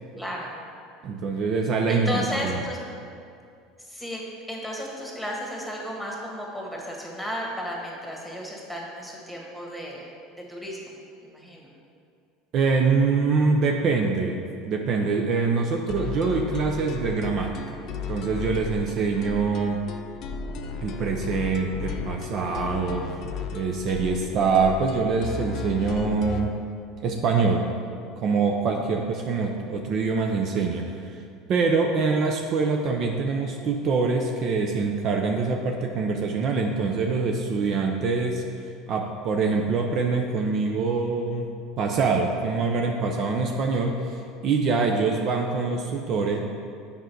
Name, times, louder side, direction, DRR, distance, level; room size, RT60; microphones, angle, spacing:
voice 1, 0.1-0.5 1.9-2.8 3.8-10.1 10.5-10.9 11.2-11.7, equal, ahead, -2 dB, 1.7 m, -34 dB
voice 2, 1.0-2.5 12.5-17.8 18.1-19.8 20.8-23.1 23.5-26.6 27.0-27.7 28.2-31.2 31.5-38.4 38.9-46.4, right 4 dB, 50° right, 2 dB, 0.6 m, -24 dB
sound 1, 15.9-26.5, left 6 dB, 55° left, 0.6 m, -35 dB
7.4 x 5.2 x 4.6 m, 2.4 s
supercardioid pair, 100°, 0 cm